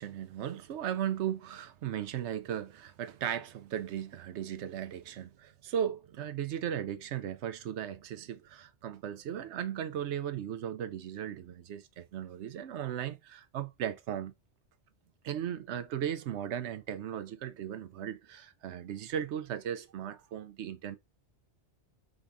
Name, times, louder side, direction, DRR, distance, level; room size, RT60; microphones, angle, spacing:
voice 1, 0.0-14.3 15.2-21.0, right 9 dB, 75° right, 0.9 m, -37 dB
5.2 x 3.6 x 2.6 m
omnidirectional pair, 1.2 m